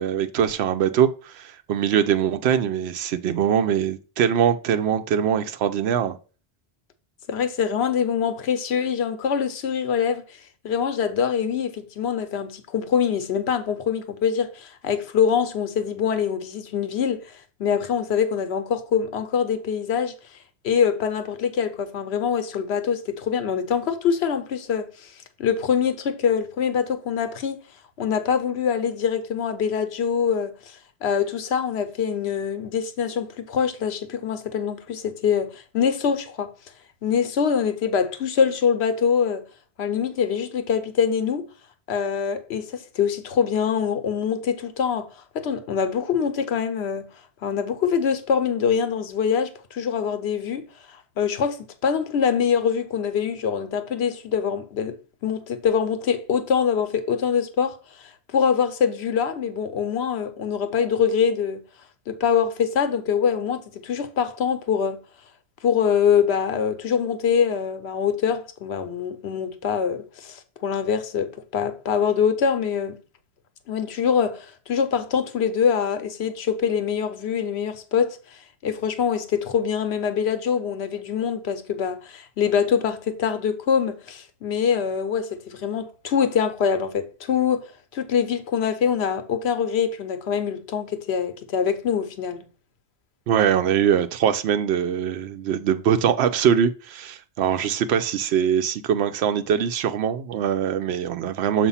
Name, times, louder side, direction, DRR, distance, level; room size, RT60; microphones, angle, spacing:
voice 1, 0.0-6.2 93.3-101.7, right 8 dB, 80° right, 0.8 m, -22 dB
voice 2, 7.3-10.2 10.6-20.1 20.6-25.1 25.4-27.6 28.0-36.5 37.0-39.4 39.8-41.5 41.9-45.1 45.3-47.1 47.4-61.6 62.1-65.0 65.6-73.0 73.7-92.5, left 7 dB, 85° left, 1.0 m, -24 dB
6.8 x 2.5 x 5.6 m
omnidirectional pair, 1.1 m